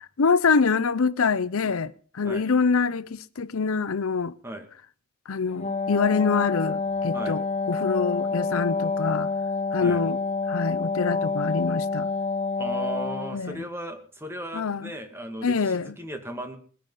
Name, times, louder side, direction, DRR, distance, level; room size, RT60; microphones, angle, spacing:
voice 1, 0.2-4.3 5.3-7.4 7.7-9.3 9.7-10.2 10.5-12.1 13.3-13.5 14.5-14.9 15.4-15.9, left 5 dB, 80° left, 0.6 m, -25 dB
Wind instrument woodwind instrument, 5.5-13.5, left 4 dB, 30° left, 0.8 m, -28 dB
voice 2, 12.6-16.6, right 1 dB, 10° right, 2.1 m, -36 dB
20.5 x 10.5 x 5.6 m
head